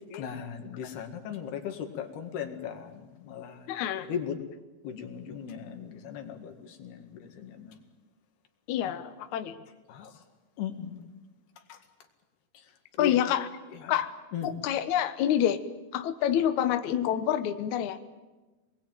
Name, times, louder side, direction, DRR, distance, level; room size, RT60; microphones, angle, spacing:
voice 1, 0.1-3.7 4.0-4.4 4.8-7.8 9.9-10.2 10.6-11.0 11.7-11.8 13.0-13.2 13.7-13.9 14.3-14.5, left 8 dB, 85° left, 5 dB, 4.1 m, -37 dB
voice 2, 3.7-4.1 8.7-9.6 13.0-13.5 13.9-14.1 14.4-15.6 15.9-18.0, left 10 dB, 65° left, 8 dB, 2.1 m, -27 dB
26.0 x 21.0 x 9.1 m, 1.2 s
omnidirectional pair, 4.4 m